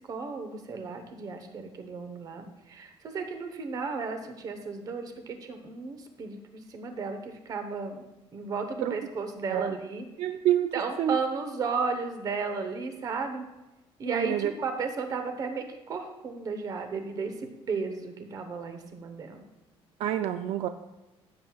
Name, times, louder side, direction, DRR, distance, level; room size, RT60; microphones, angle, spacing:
voice 1, 0.1-8.0 8.3-10.0 10.7-13.4 14.0-19.4, right 4 dB, 40° right, 6 dB, 1.0 m, -34 dB
voice 2, 10.2-10.7 11.0-11.2 14.0-14.5 20.0-20.7, right 11 dB, 80° right, 9 dB, 0.4 m, -27 dB
16.0 x 7.5 x 2.4 m, 1.0 s
cardioid pair, 175°, 10 cm